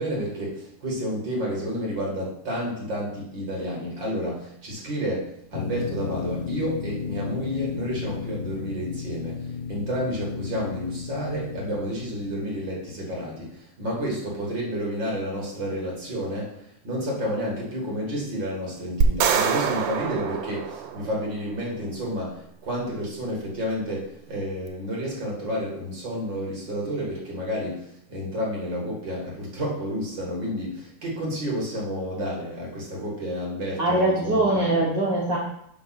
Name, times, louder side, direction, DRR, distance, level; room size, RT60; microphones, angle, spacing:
voice 1, 0.0-34.9, equal, 45° right, -4 dB, 1.8 m, -30 dB
sound 1, 5.5-12.7, left 6 dB, 85° left, 2.1 m, -34 dB
sound 2, 19.0-21.4, right 7 dB, 90° right, 2.3 m, -25 dB
voice 2, 33.8-35.4, right 2 dB, 75° right, -4 dB, 1.0 m, -22 dB
5.9 x 4.9 x 5.6 m, 0.75 s
omnidirectional pair, 3.7 m